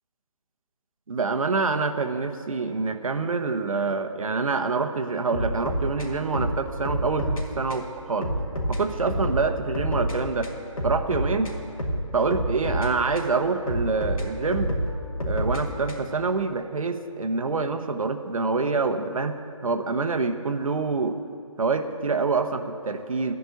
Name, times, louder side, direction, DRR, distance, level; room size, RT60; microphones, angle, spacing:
voice 1, 1.1-8.3 8.7-10.5 10.8-11.6 12.1-14.7 15.3-21.2 21.6-23.3, right 4 dB, 80° right, 6 dB, 1.0 m, -26 dB
sound 1, 5.3-7.4 7.7-7.9 8.2-10.2 10.4-13.3 13.7-16.2, equal, 90° left, 2.6 m, -28 dB
13.0 x 5.3 x 9.2 m, 2.5 s
hypercardioid pair, 165°, 17 cm